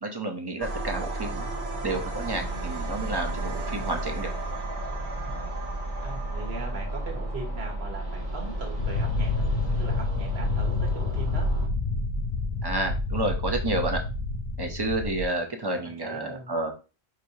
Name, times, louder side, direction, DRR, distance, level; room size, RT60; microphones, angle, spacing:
voice 1, 0.0-1.5 1.8-4.3 12.6-14.0 14.6-16.7, right 2 dB, 25° right, 4 dB, 0.6 m, -30 dB
sound 1, 0.6-11.7, right 2 dB, 55° right, 0.9 m, -33 dB
sound 2, 2.4-9.9, left 2 dB, 45° left, 0.5 m, -43 dB
voice 2, 6.0-9.5 9.8-11.6 15.7-16.5, right 2 dB, 75° right, 2 dB, 1.5 m, -40 dB
sound 3, 8.8-15.2, left 3 dB, 85° left, 1.1 m, -28 dB
5.1 x 3.1 x 2.7 m, 0.33 s
omnidirectional pair, 1.1 m